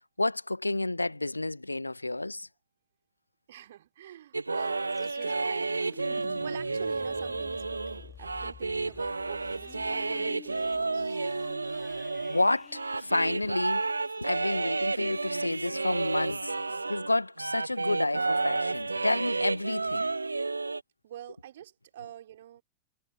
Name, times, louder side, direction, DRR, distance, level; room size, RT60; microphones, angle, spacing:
voice 1, 0.2-2.5 12.3-13.9 14.2-16.5 16.9-20.1, left 2 dB, 85° left, 1.5 m, -30 dB
voice 2, 3.5-11.3 21.0-22.6, right 12 dB, 60° right, 5.3 m, -46 dB
sound 1, 4.3-17.1 17.4-20.8, right 3 dB, 80° right, 1.0 m, -31 dB
sound 2, 4.9-14.7, left 8 dB, 25° left, 3.7 m, -52 dB
figure-of-eight pair, 90°, 0 cm